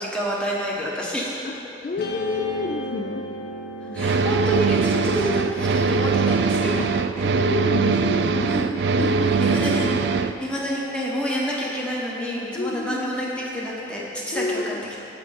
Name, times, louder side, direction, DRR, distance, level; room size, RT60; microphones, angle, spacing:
voice 1, 0.0-1.3 3.8-6.9 8.5-8.7 8.9-9.1 9.4-9.9 10.2-14.7, equal, 5° left, -5 dB, 1.4 m, -28 dB
voice 2, 1.8-3.3 3.8-4.1 6.8-6.9 7.2-8.5 9.0-9.8 12.5-13.2 14.3-14.8, left 3 dB, 40° left, 3 dB, 0.3 m, -30 dB
Guitar, 2.0-8.4, equal, 60° left, 0.8 m, -37 dB
sound 1, 4.0-10.3, right 4 dB, 65° right, 0.4 m, -21 dB
16.0 x 5.4 x 4.2 m, 2.9 s
head